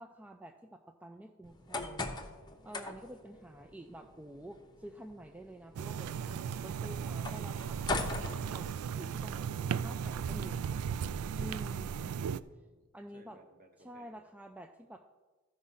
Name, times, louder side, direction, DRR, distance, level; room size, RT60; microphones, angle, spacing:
voice 1, 0.0-2.2 2.6-8.7 8.9-10.8 11.4-12.2 12.9-13.4 13.8-15.1, right 1 dB, 5° right, 4 dB, 0.3 m, -49 dB
sound 1, 1.4-9.2, left 3 dB, 20° left, 0.8 m, -42 dB
sound 2, 5.8-12.4, right 7 dB, 85° right, 0.3 m, -36 dB
voice 2, 11.8-14.2, right 1 dB, 40° right, 4 dB, 1.2 m, -61 dB
14.0 x 5.1 x 5.6 m, 1.3 s
head